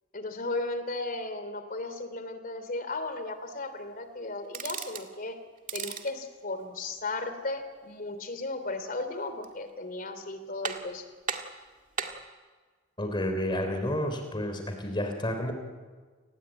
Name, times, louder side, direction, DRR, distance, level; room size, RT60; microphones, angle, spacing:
voice 1, 0.1-5.4 5.7-11.0, left 2 dB, 50° left, 10 dB, 3.1 m, -35 dB
sound 1, 4.4-5.1 5.6-6.2 9.2-9.7 10.1-10.2 10.6-11.0 11.3-12.2, right 6 dB, 45° right, 2.1 m, -36 dB
voice 2, 13.0-15.5, left 1 dB, 25° left, 5 dB, 3.4 m, -30 dB
30.0 x 19.0 x 9.0 m, 1.5 s
head